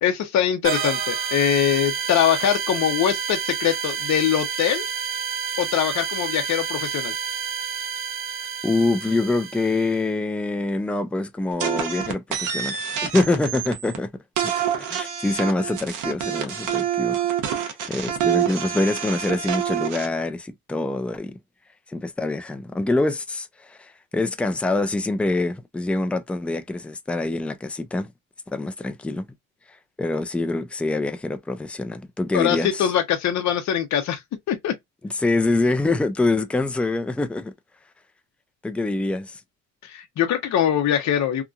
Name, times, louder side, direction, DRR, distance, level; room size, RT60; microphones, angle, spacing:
voice 1, 0.0-4.9 5.6-7.1 32.3-34.2 34.5-34.7 39.8-41.4, left 10 dB, 65° left, 0.7 m, -22 dB
sound 1, 0.6-10.0, right 6 dB, 45° right, 0.7 m, -29 dB
voice 2, 8.6-14.1 14.4-14.5 14.8-21.4 21.9-28.1 28.5-29.3 30.0-32.9 35.0-37.5 38.6-39.4, left 2 dB, 5° left, 0.4 m, -25 dB
sound 2, 11.6-14.0 14.4-20.1, right 9 dB, 85° right, 0.9 m, -26 dB
2.9 x 2.5 x 2.3 m
cardioid pair, 90°, 30 cm